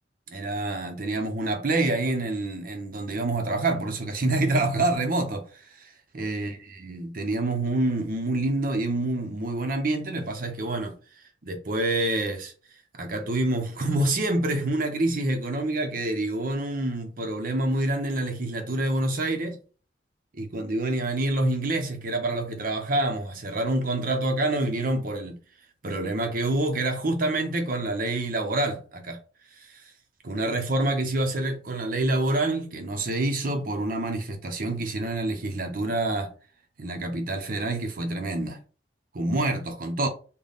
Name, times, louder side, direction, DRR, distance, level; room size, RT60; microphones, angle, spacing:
voice 1, 0.3-11.0 11.4-12.5 12.9-19.6 20.3-25.4 25.8-29.2 29.6-29.7 30.2-36.3 36.8-38.6 39.1-40.1, right 2 dB, 50° right, 0.7 m, -27 dB
3.9 x 2.2 x 3.4 m
head